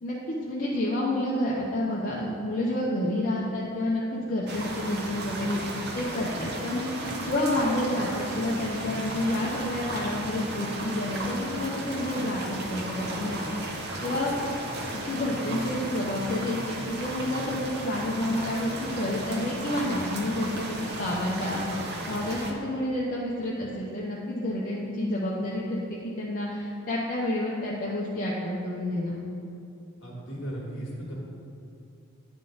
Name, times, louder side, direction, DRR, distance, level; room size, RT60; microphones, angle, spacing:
voice 1, 0.0-5.6 5.9-14.3 14.9-29.2, left 1 dB, 40° left, -6 dB, 0.7 m, -29 dB
sound 1, 4.5-22.5, right 1 dB, 50° right, 0.6 m, -35 dB
voice 2, 30.0-31.1, right 1 dB, 60° left, -3 dB, 1.5 m, -36 dB
9.5 x 3.7 x 3.8 m, 2.6 s
head